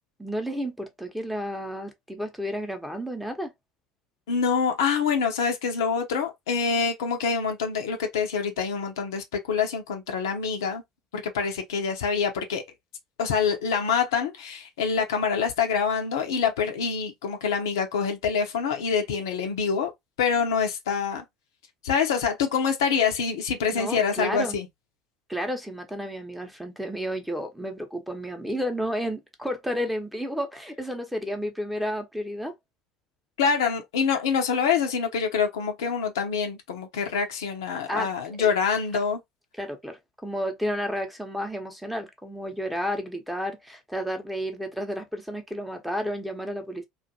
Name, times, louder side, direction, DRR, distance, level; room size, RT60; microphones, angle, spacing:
voice 1, 0.2-3.5 23.7-24.6 25.3-32.5 37.9-38.1 38.4-38.5 39.6-46.9, equal, 5° right, 0.8 m, -31 dB
voice 2, 4.3-10.8 11.1-12.6 13.2-19.9 20.2-21.2 21.8-24.7 33.4-39.2, left 6 dB, 70° left, 0.6 m, -26 dB
2.5 x 2.4 x 2.7 m
figure-of-eight pair, 65°, 2 cm